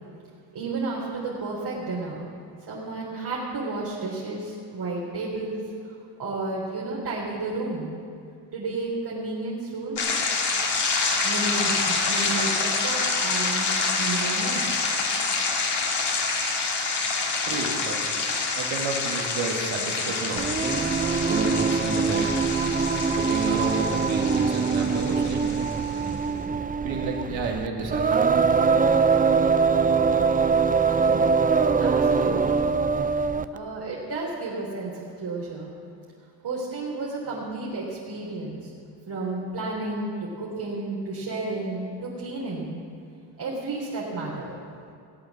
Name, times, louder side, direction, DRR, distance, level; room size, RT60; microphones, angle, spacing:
voice 1, 0.5-2.2 2.7-5.6 6.2-7.9 8.5-10.0 11.2-14.8 30.9-31.3 31.8-32.7 33.5-35.7 36.4-38.7 39.1-42.7 43.4-44.6, right 2 dB, 55° right, -6 dB, 3.2 m, -32 dB
sound 1, 10.0-26.1, left 4 dB, 60° left, 2.5 m, -27 dB
voice 2, 17.5-18.0 18.5-20.6 20.9-22.3 23.2-26.3 26.8-28.3, right 3 dB, 80° right, 1 dB, 2.3 m, -31 dB
Singing, 20.4-33.6, right 5 dB, 20° right, 0.5 m, -23 dB
17.0 x 8.5 x 7.3 m, 2.3 s
supercardioid pair, 65°, 46 cm